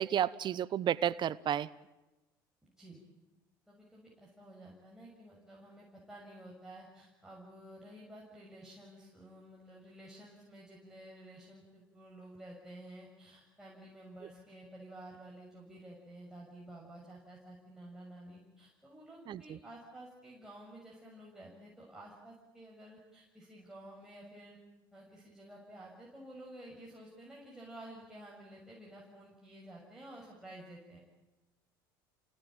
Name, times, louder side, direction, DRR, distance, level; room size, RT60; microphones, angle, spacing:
voice 1, 0.0-1.7 19.3-19.6, right 10 dB, 40° right, 20 dB, 0.8 m, -32 dB
voice 2, 2.6-3.0 3.7-24.6 24.9-31.0, right 1 dB, 5° right, -4 dB, 6.6 m, -52 dB
29.0 x 18.5 x 8.9 m, 1.1 s
hypercardioid pair, 75°, 11 cm